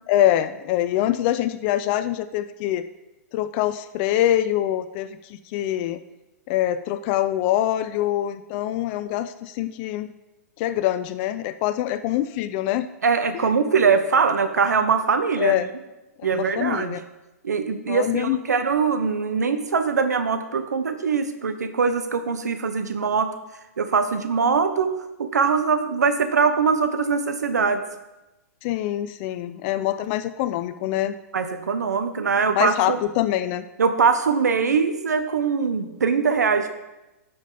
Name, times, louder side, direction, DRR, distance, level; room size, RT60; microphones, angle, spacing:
voice 1, 0.1-2.9 3.3-6.0 6.5-10.1 10.6-12.9 13.3-13.5 15.4-15.7 16.2-17.0 17.9-18.4 28.6-31.1 32.5-33.7, left 13 dB, 40° left, 11 dB, 0.4 m, -24 dB
voice 2, 13.0-15.6 16.2-17.0 17.4-23.3 23.8-24.9 25.2-27.8 31.3-33.0 33.8-36.7, right 5 dB, 85° right, 9 dB, 0.7 m, -22 dB
12.5 x 5.2 x 3.9 m, 1.0 s
hypercardioid pair, 120°, 9 cm